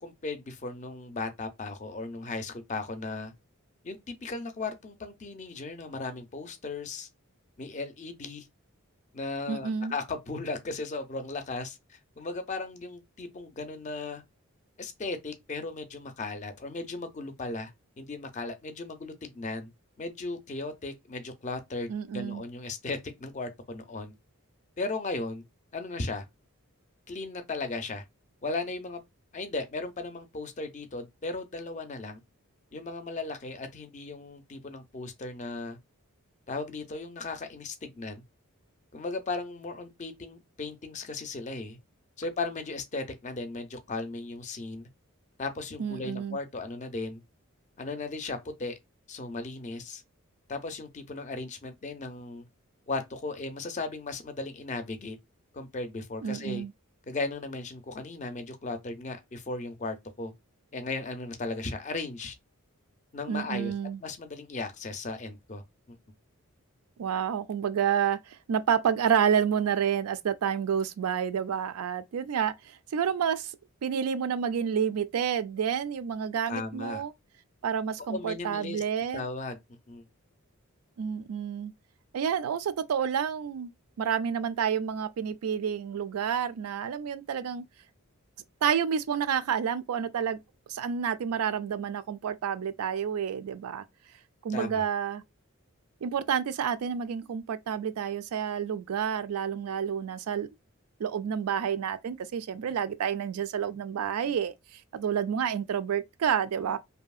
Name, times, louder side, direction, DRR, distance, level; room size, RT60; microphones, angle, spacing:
voice 1, 0.0-3.3 3.8-7.1 7.6-8.5 9.1-14.2 14.8-17.7 18.0-19.7 20.0-24.1 24.8-25.4 25.7-26.3 27.1-28.0 28.4-29.0 29.3-32.2 32.7-35.8 36.5-38.2 38.9-41.8 42.2-44.9 45.4-47.2 47.8-48.8 49.1-50.0 50.5-52.5 52.9-55.2 55.5-56.6 57.1-60.3 60.7-62.3 63.1-63.7 64.0-65.6 65.9-66.0 76.5-77.0 78.1-78.8 79.1-79.6 79.9-80.0 94.5-94.8, left 3 dB, 35° left, 0.5 m, -36 dB
voice 2, 9.5-9.9 21.9-22.4 45.8-46.4 56.2-56.7 63.3-64.0 67.0-73.5 73.8-77.1 77.6-79.2 81.0-81.7 82.1-83.7 84.0-87.6 88.6-90.4 90.7-93.8 94.4-95.2 96.0-100.5 101.0-106.8, right 7 dB, 85° right, 0.4 m, -29 dB
2.7 x 2.7 x 2.3 m
head